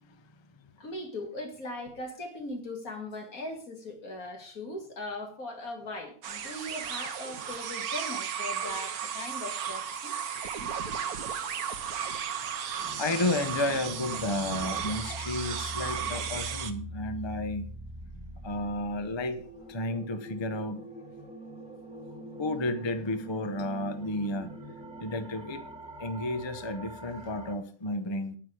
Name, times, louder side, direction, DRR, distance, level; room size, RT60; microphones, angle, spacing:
voice 1, 0.8-10.2, left 1 dB, 70° left, 2.8 m, -39 dB
sound 1, 6.2-16.7, right 8 dB, 90° right, 1.4 m, -35 dB
sound 2, 12.8-27.6, equal, 5° right, 1.6 m, -44 dB
voice 2, 13.0-17.7 18.4-19.4 19.7-20.8 22.4-24.5 25.0-25.6 26.0-28.4, left 2 dB, 25° left, 0.8 m, -32 dB
10.0 x 9.8 x 5.0 m
omnidirectional pair, 1.5 m